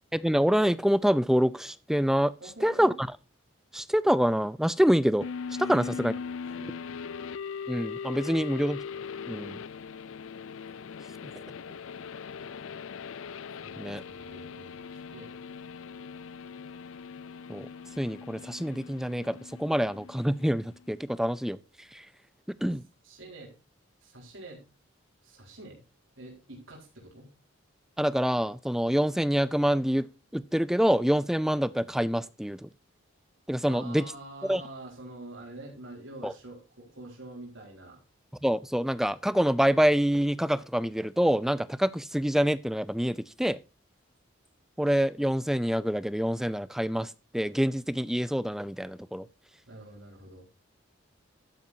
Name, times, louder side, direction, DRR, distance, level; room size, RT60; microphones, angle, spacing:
voice 1, 0.1-2.3 2.6-3.1 3.7-5.3 5.6-6.1 7.7-8.8 9.3-9.6 13.8-14.0 17.5-17.7 18.0-21.6 21.9-22.1 22.5-22.8 28.0-30.1 30.3-32.7 33.5-34.0 34.5-34.6 36.2-36.3 38.4-43.6 44.8-49.3, equal, ahead, 0.4 m, -26 dB
voice 2, 2.4-3.0 5.6-5.9 6.4-6.9 13.6-15.4 23.0-23.5 24.0-24.6 25.2-25.8 26.2-27.3 33.7-38.0 49.7-50.5, right 2 dB, 75° right, 4.5 m, -46 dB
sound 1, 5.2-20.9, left 6 dB, 85° left, 0.5 m, -40 dB
12.5 x 9.5 x 2.7 m
head